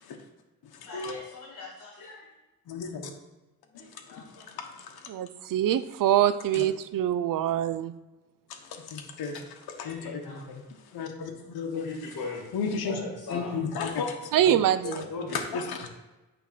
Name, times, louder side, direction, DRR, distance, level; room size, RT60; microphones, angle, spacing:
voice 1, 0.9-2.3 3.7-4.5 6.1-6.3 8.7-8.8 9.7-10.4 11.7-12.5 12.8-13.6 14.3-14.6 15.1-15.4, left 3 dB, 60° left, -2 dB, 1.8 m, -39 dB
voice 2, 2.7-3.1 3.7-5.1 6.5-6.6 8.5-10.6 10.9-11.9 12.5-13.0 13.3-14.3 14.8-15.0 15.3-16.1, left 5 dB, 85° left, 3 dB, 1.0 m, -34 dB
voice 3, 5.1-7.9 14.3-15.0, right 11 dB, 60° right, 14 dB, 0.5 m, -24 dB
8.5 x 3.5 x 5.8 m, 1.1 s
cardioid pair, 120°, 37 cm